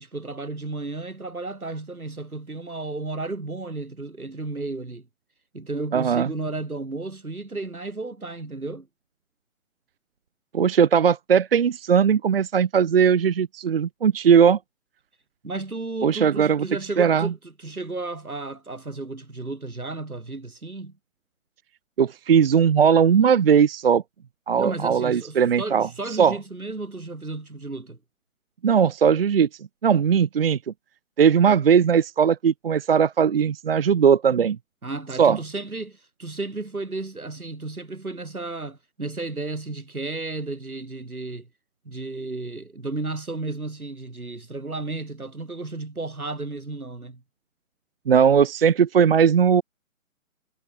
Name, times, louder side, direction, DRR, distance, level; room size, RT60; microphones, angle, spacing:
voice 1, 0.0-5.1 5.5-8.9 15.4-20.9 24.6-28.0 34.8-41.5 41.8-47.2, right 3 dB, 80° right, 7.6 m, -33 dB
voice 2, 5.9-6.3 10.5-14.6 16.0-16.7 17.0-17.3 22.0-24.0 24.5-26.4 28.6-29.5 29.8-30.6 31.2-34.6 35.2-35.4 48.1-49.6, right 7 dB, 40° right, 0.9 m, -19 dB
figure-of-eight pair, 140°, 43 cm